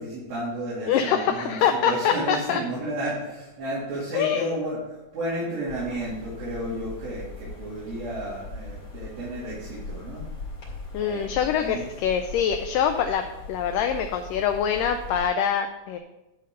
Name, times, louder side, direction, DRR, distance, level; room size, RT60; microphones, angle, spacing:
voice 1, 0.0-10.2 10.9-11.9, right 1 dB, 75° right, -10 dB, 4.2 m, -32 dB
voice 2, 0.9-2.6 4.1-4.5 10.9-16.0, left 8 dB, 80° left, 6 dB, 2.0 m, -24 dB
sound 1, 5.7-15.3, left 3 dB, 45° left, 2.9 m, -40 dB
10.5 x 4.0 x 6.4 m, 0.97 s
omnidirectional pair, 4.2 m